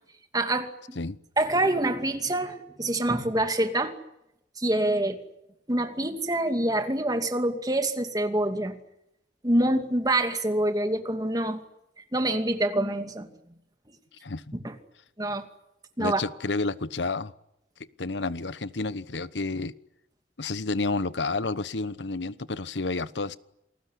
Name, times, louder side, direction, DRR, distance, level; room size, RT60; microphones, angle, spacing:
voice 1, 0.3-1.0 1.4-3.9 4.6-5.2 5.7-8.8 9.4-11.6 12.1-13.3 14.6-14.7 15.2-15.4 16.0-16.2, right 1 dB, 20° right, 6 dB, 2.5 m, -26 dB
voice 2, 16.0-17.3 17.8-19.7 20.4-23.4, left 3 dB, 85° left, 16 dB, 1.1 m, -30 dB
28.5 x 20.0 x 9.9 m, 0.84 s
head